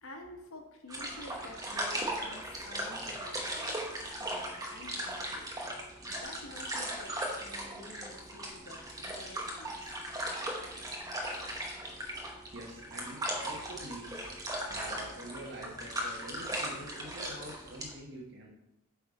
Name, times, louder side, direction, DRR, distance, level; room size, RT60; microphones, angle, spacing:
voice 1, 0.0-5.5 6.1-10.0, left 1 dB, 80° left, 2 dB, 1.1 m, -50 dB
sound 1, 0.9-17.9, right 1 dB, 15° right, 0.8 m, -38 dB
voice 2, 12.5-14.3 14.6-18.5, right 1 dB, 50° right, -4 dB, 1.0 m, -46 dB
7.8 x 3.5 x 4.8 m, 0.95 s
head